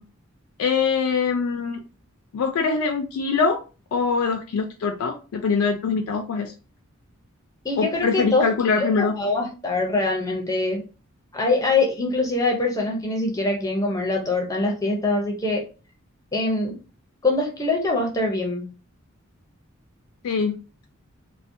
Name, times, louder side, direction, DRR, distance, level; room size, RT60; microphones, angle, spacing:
voice 1, 0.6-1.8 2.3-3.6 3.9-6.5 7.8-9.1 20.2-20.5, left 5 dB, 80° left, 3 dB, 0.3 m, -23 dB
voice 2, 7.6-8.5 8.8-10.8 11.3-15.6 16.3-16.7 17.2-18.7, left 2 dB, 15° left, 0 dB, 0.4 m, -23 dB
2.5 x 2.0 x 2.5 m, 0.34 s
head